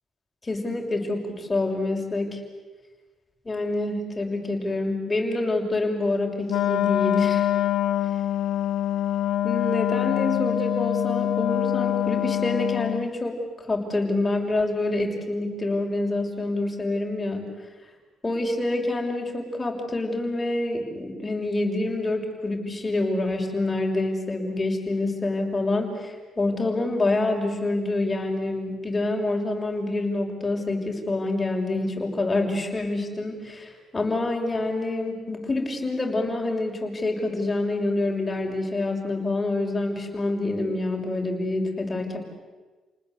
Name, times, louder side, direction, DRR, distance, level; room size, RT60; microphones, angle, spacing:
voice 1, 0.4-2.4 3.4-7.5 9.4-13.4 13.7-17.5 18.2-42.2, left 2 dB, 20° left, 1 dB, 6.2 m, -27 dB
Wind instrument woodwind instrument, 6.5-13.1, left 12 dB, 80° left, 0.9 m, -24 dB
29.5 x 19.5 x 8.3 m, 1.3 s
cardioid pair, 90°, 0 cm